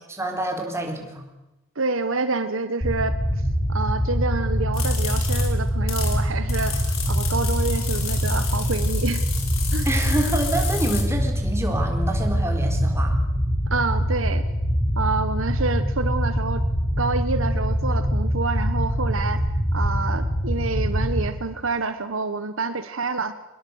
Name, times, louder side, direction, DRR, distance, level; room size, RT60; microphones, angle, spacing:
voice 1, 0.1-1.3 9.8-13.1, right 1 dB, 15° right, 3 dB, 3.9 m, -27 dB
voice 2, 1.7-3.2 3.7-9.2 9.7-9.9 13.7-14.4 15.0-16.6 17.0-19.4 19.7-23.3, right 3 dB, 70° right, 11 dB, 1.3 m, -27 dB
sound 1, 2.8-21.3, equal, 35° left, 4.3 m, -24 dB
sound 2, 4.7-6.2 6.5-11.0, left 7 dB, 80° left, 5.8 m, -32 dB
24.0 x 21.5 x 8.1 m, 1.0 s
head